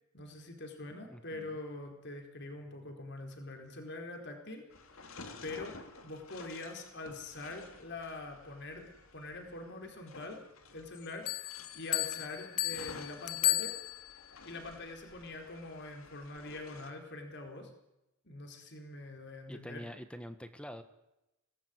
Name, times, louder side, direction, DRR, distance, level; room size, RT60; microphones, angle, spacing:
voice 1, 0.1-4.7 5.4-5.8 6.0-13.8 14.4-17.7 18.2-19.8, left 2 dB, 50° left, 4 dB, 4.6 m, -44 dB
voice 2, 1.1-1.6 19.5-20.8, equal, 5° left, 9 dB, 1.4 m, -46 dB
sound 1, 4.7-16.9, left 3 dB, 70° left, 2.9 m, -53 dB
Bell, 11.3-14.3, left 17 dB, 85° left, 0.8 m, -34 dB
25.0 x 18.5 x 9.6 m, 0.93 s
head